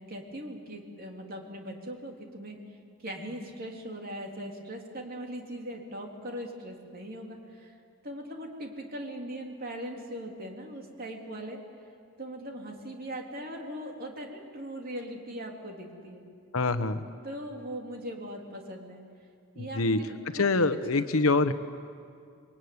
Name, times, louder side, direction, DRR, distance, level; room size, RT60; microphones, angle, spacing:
voice 1, 0.0-2.8 3.0-7.7 8.0-11.6 12.2-16.2 17.2-19.0 19.5-21.0, equal, 45° right, 1 dB, 3.5 m, -40 dB
voice 2, 16.5-17.0 19.6-20.0 20.3-21.5, left 3 dB, 70° left, 11 dB, 1.1 m, -25 dB
27.5 x 22.5 x 9.6 m, 2.4 s
head